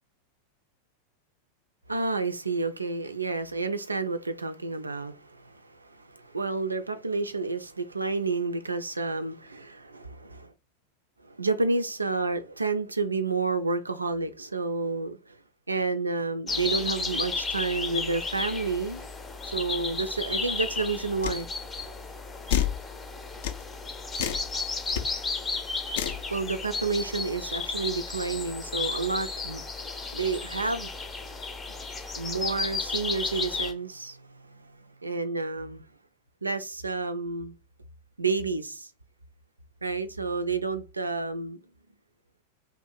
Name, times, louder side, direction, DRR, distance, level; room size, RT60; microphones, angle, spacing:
voice 1, 1.9-10.5 11.2-15.4 15.7-19.1 19.4-21.5 26.3-29.6 30.1-30.9 32.2-35.9 36.4-37.5 38.2-38.9 39.8-41.6, right 3 dB, 80° right, 0.3 m, -30 dB
sound 1, 16.5-33.7, left 4 dB, 15° left, 0.6 m, -33 dB
sound 2, 21.2-21.4 22.5-22.8 23.4-23.6 24.1-24.5 24.9-25.0 25.9-26.2, left 10 dB, 55° left, 0.4 m, -28 dB
2.6 x 2.4 x 3.8 m
figure-of-eight pair, 90°, 0 cm